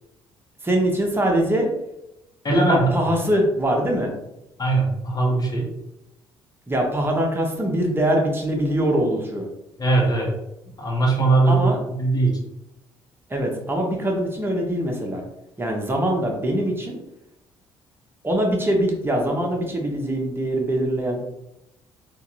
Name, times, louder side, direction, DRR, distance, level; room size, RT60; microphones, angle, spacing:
voice 1, 0.6-1.7 2.5-4.1 6.7-9.5 11.5-11.8 13.3-15.2 15.6-17.0 18.2-21.4, right 1 dB, 20° right, 0 dB, 1.1 m, -23 dB
voice 2, 2.4-3.1 4.6-5.7 9.8-10.3 10.8-11.7 12.0-12.3, right 3 dB, 30° left, -2 dB, 1.3 m, -20 dB
3.5 x 2.6 x 3.0 m, 0.85 s
hypercardioid pair, 50°, 12 cm